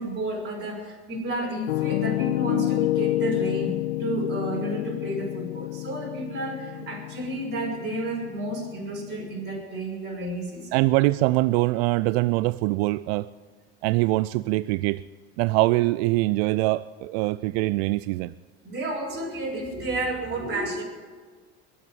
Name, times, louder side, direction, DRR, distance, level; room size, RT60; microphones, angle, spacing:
voice 1, 0.0-10.8 18.6-20.8, right 2 dB, 35° right, -3 dB, 6.5 m, -31 dB
Piano, 1.7-9.5, left 16 dB, 85° left, 0.5 m, -29 dB
voice 2, 10.7-13.3 13.8-15.0 15.4-18.3, right 20 dB, 70° right, 17 dB, 0.5 m, -23 dB
22.5 x 8.1 x 8.0 m, 1.5 s
hypercardioid pair, 80°, 32 cm